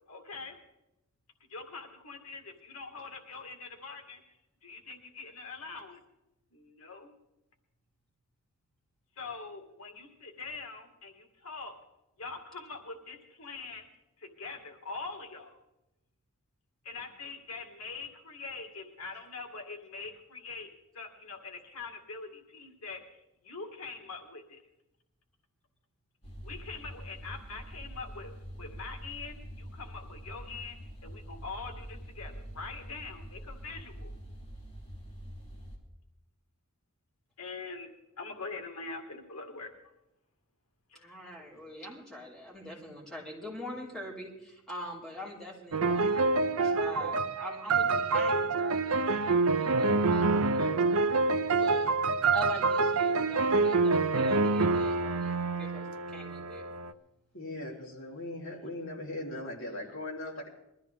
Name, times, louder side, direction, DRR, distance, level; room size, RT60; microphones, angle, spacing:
voice 1, 0.1-0.6 1.5-4.2 4.6-6.0 6.5-7.1 9.2-11.7 12.2-13.9 14.2-15.6 16.8-20.7 20.9-24.6 26.4-28.3 28.6-34.1 37.4-37.9 38.2-39.8 40.9-41.7, left 4 dB, 90° left, 4 dB, 2.1 m, -43 dB
sound 1, 26.2-35.8, equal, 30° left, 3.7 m, -45 dB
voice 2, 40.9-51.1 51.5-51.9 52.3-56.6, equal, ahead, -5 dB, 4.6 m, -44 dB
sound 2, 45.7-56.9, right 3 dB, 75° right, 0.7 m, -27 dB
voice 3, 57.3-60.5, left 1 dB, 60° left, -2 dB, 3.7 m, -39 dB
21.5 x 14.0 x 3.6 m, 0.90 s
head